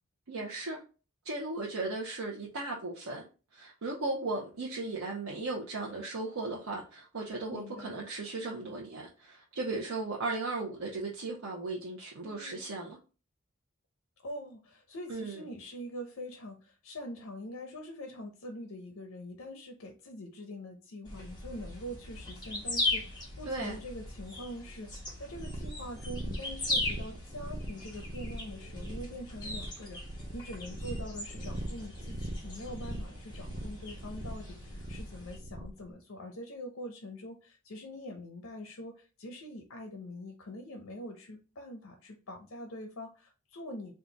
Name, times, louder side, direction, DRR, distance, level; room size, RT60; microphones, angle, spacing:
voice 1, 0.3-0.8 1.2-3.2 3.5-13.0 15.1-15.4 23.4-23.8, right 2 dB, 90° right, 0.8 m, -36 dB
voice 2, 7.5-8.0 12.2-12.7 14.2-43.9, left 1 dB, 75° left, 0.7 m, -44 dB
sound 1, 21.0-35.4, left 2 dB, 20° left, 1.2 m, -39 dB
sound 2, 25.3-35.8, right 1 dB, 40° right, 0.5 m, -41 dB
3.7 x 2.4 x 3.9 m
head